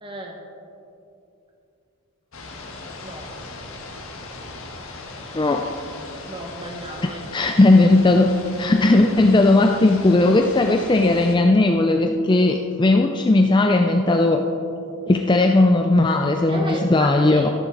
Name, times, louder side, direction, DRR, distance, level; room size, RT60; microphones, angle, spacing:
voice 1, 0.0-0.4 3.0-3.3 6.3-7.2 16.5-17.5, right 1 dB, 20° right, 1 dB, 1.4 m, -33 dB
sound 1, 2.3-11.4, left 3 dB, 65° left, 1.4 m, -38 dB
voice 2, 5.3-5.7 7.0-8.3 8.6-14.5 15.1-17.5, left 2 dB, 20° left, 4 dB, 0.4 m, -17 dB
14.0 x 11.0 x 3.9 m, 2.7 s
head